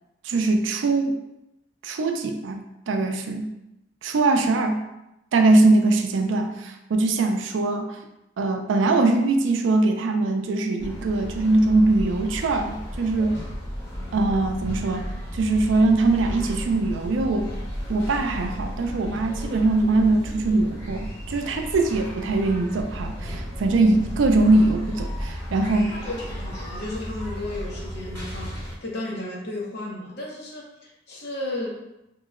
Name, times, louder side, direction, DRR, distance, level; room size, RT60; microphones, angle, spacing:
voice 1, 0.2-1.2 1.8-3.5 4.0-4.8 5.3-8.0 8.4-13.4 14.1-15.1 15.3-17.5 17.9-26.0, right 2 dB, 85° right, 5 dB, 0.4 m, -22 dB
sound 1, 10.8-28.8, equal, 15° left, 0.9 m, -34 dB
voice 2, 25.9-31.7, left 2 dB, 60° left, -3 dB, 0.8 m, -34 dB
2.9 x 2.0 x 3.6 m, 0.89 s
head